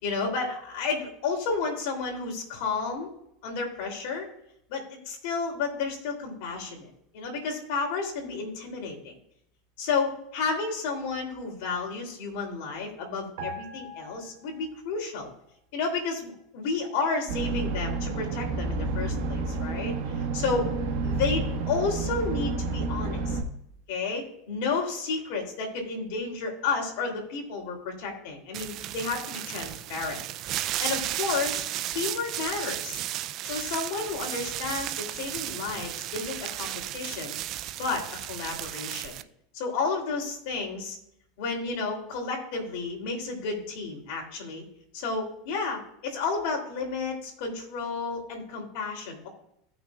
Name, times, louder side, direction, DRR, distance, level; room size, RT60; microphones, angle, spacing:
voice 1, 0.0-3.1 3.4-4.3 4.7-9.1 9.8-15.3 15.7-20.7 21.0-23.4 23.9-30.2 30.5-33.0 33.4-37.4 37.8-39.1 39.5-41.0 41.4-44.6 44.9-49.3, left 4 dB, 70° left, 2 dB, 3.0 m, -31 dB
sound 1, 13.4-15.0 15.3-15.5, equal, 80° right, 1.7 m, -41 dB
sound 2, 17.3-23.4, right 3 dB, 60° right, 1.5 m, -30 dB
sound 3, 28.5-39.2, right 13 dB, 45° right, 0.4 m, -34 dB
16.0 x 6.0 x 2.4 m, 0.76 s
supercardioid pair, 140°, 0 cm